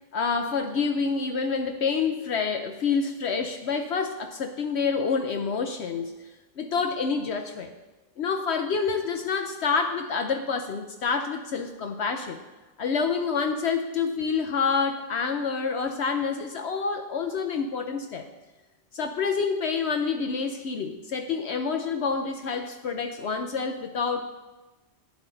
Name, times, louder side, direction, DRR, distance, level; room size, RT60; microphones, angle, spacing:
voice 1, 0.1-6.2 6.6-7.7 8.2-12.4 12.8-18.2 18.9-24.2, left 5 dB, 65° left, 6 dB, 0.9 m, -27 dB
11.5 x 9.9 x 3.9 m, 1.2 s
omnidirectional pair, 1.3 m